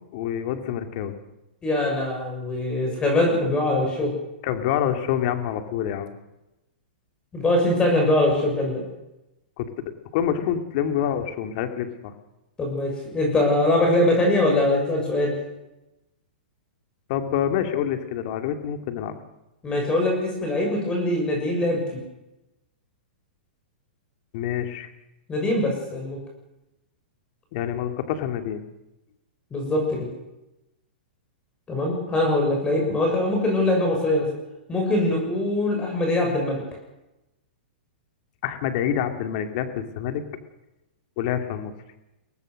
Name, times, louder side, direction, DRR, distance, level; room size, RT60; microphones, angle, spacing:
voice 1, 0.1-1.2 4.4-6.1 9.6-9.7 10.1-12.1 17.1-19.1 24.3-24.9 27.5-28.6 38.4-40.2 41.2-41.7, left 9 dB, 50° left, 7 dB, 2.6 m, -27 dB
voice 2, 1.6-4.1 7.3-8.8 12.6-15.3 19.6-22.0 25.3-26.2 29.5-30.1 31.7-34.3 34.7-36.6, left 1 dB, 15° left, 1 dB, 6.6 m, -22 dB
23.5 x 18.0 x 6.6 m, 0.94 s
hypercardioid pair, 125°, 5 cm